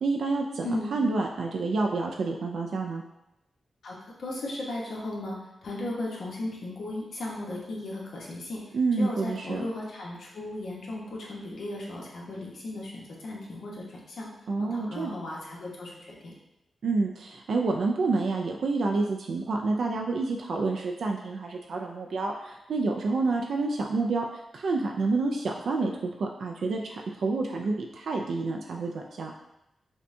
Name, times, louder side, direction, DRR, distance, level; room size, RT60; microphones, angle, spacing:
voice 1, 0.0-3.0 8.7-9.6 14.5-15.1 16.8-24.3 24.5-29.3, right 3 dB, 75° right, 1 dB, 0.3 m, -28 dB
voice 2, 0.6-1.0 3.8-5.4 5.6-14.3 14.6-16.3, left 1 dB, 80° left, -3 dB, 0.9 m, -36 dB
5.3 x 2.2 x 2.6 m, 0.90 s
cardioid pair, 75°, 0 cm